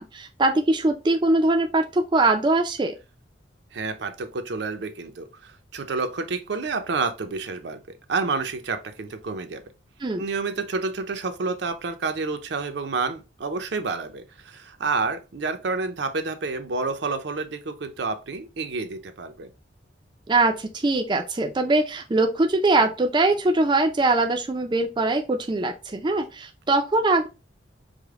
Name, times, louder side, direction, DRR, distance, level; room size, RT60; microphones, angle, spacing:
voice 1, 0.0-2.9 10.0-10.2 20.3-27.3, right 2 dB, 25° right, 0.4 m, -22 dB
voice 2, 3.7-7.8 8.1-9.6 10.2-19.5, right 4 dB, 70° right, 0.6 m, -29 dB
4.9 x 2.1 x 3.5 m
head